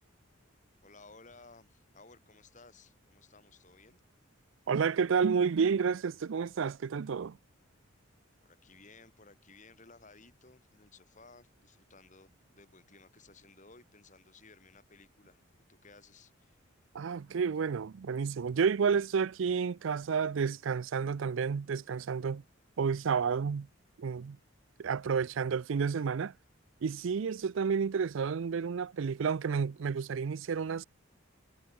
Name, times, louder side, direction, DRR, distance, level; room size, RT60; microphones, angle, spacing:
voice 1, 0.8-4.0 8.4-15.4 15.7-16.7, left 3 dB, 35° left, 5.9 m, -58 dB
voice 2, 4.7-7.4 16.9-22.4 22.8-23.7 24.0-24.4 24.8-26.3 26.8-30.8, right 6 dB, 65° right, 0.4 m, -30 dB
head